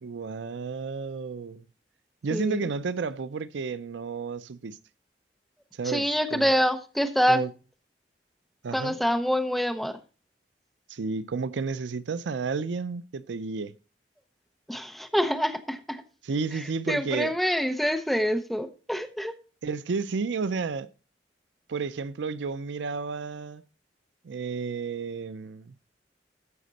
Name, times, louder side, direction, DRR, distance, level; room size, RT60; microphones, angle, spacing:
voice 1, 0.0-1.6 2.2-4.8 5.7-6.0 6.3-6.5 7.3-7.5 8.6-9.0 10.9-13.7 16.2-17.3 19.6-20.9 21.7-23.6 24.2-25.7, right 4 dB, 80° right, 0.5 m, -31 dB
voice 2, 2.3-2.7 5.8-7.4 8.7-10.0 14.7-16.0 16.5-19.3, equal, ahead, 0.8 m, -26 dB
14.0 x 5.2 x 4.0 m
head